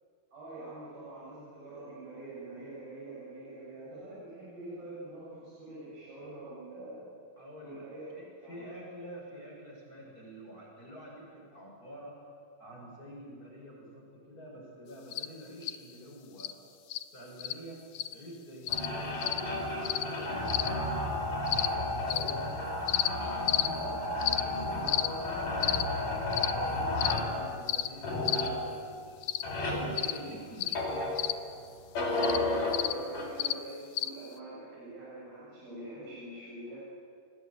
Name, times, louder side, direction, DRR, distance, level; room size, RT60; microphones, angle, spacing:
voice 1, 0.3-7.0 7.6-8.1 8.4-8.6 23.7-24.3 24.8-25.3 32.7-36.8, right 2 dB, 75° right, -7 dB, 9.3 m, -45 dB
voice 2, 7.4-12.2 12.6-16.5 17.1-17.8 18.1-22.6 23.1-23.8 24.2-24.8 25.3-25.7 26.0-31.2, equal, 25° left, -2 dB, 6.5 m, -47 dB
sound 1, 15.1-15.3 15.6-15.8 16.4-16.5 16.9-17.0 17.4-17.5 17.9-18.1 18.7-18.9 19.2-19.4 19.8-20.0 20.5-20.7 21.5-21.7 22.1-22.3 22.9-23.1 23.5-23.7 24.2-24.4 24.9-25.1 25.6-25.8 26.3-26.5 27.0-27.2 27.7-27.9 28.3-28.5 29.2-29.4 30.0-30.2 30.6-30.8 31.2-31.3 32.2-32.4 32.7-32.9 33.4-33.5 34.0-34.1, left 13 dB, 75° left, 2.0 m, -30 dB
sound 2, 18.7-31.5 31.9-33.3, left 1 dB, 60° left, 7.1 m, -33 dB
29.5 x 21.5 x 8.8 m, 2.2 s
omnidirectional pair, 4.3 m